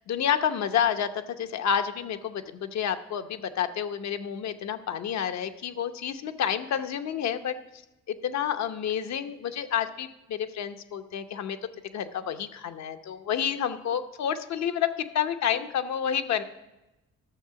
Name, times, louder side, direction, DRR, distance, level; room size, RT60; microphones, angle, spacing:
voice 1, 0.1-7.8 8.1-11.6 11.9-16.4, left 8 dB, 65° left, 9 dB, 0.9 m, -29 dB
12.5 x 6.8 x 5.8 m, 1.0 s
cardioid pair, 90°, 30 cm